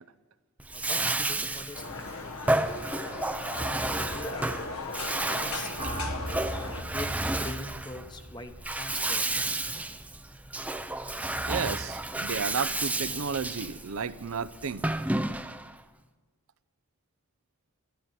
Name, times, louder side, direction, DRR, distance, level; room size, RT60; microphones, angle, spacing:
Bathtub (filling or washing), 0.6-15.7, right 2 dB, 5° right, 0.5 m, -31 dB
voice 1, 0.7-3.6 4.1-4.9 5.3-6.0 6.9-9.3, left 2 dB, 20° left, 7 dB, 0.9 m, -44 dB
sound 1, 1.7-6.8, left 3 dB, 80° left, 1.3 m, -37 dB
sound 2, 5.8-10.0, right 1 dB, 25° right, 1.2 m, -40 dB
voice 2, 11.4-14.9, right 5 dB, 75° right, 14 dB, 0.6 m, -33 dB
12.5 x 11.5 x 7.7 m, 1.3 s
head